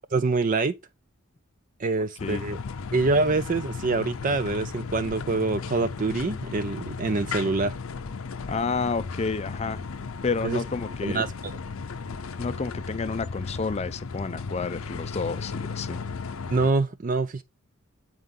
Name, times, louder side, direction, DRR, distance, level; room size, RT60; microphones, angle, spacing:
voice 1, 0.1-0.7 1.8-2.6 2.9-7.7 10.4-10.6 11.0-11.6 16.5-17.4, right 3 dB, 40° right, 0.4 m, -25 dB
sound 1, 2.2-16.7, left 4 dB, 80° left, 0.6 m, -35 dB
voice 2, 8.5-9.8 10.2-11.2 12.4-16.0, left 4 dB, 30° left, 0.4 m, -30 dB
8.1 x 4.6 x 3.7 m
head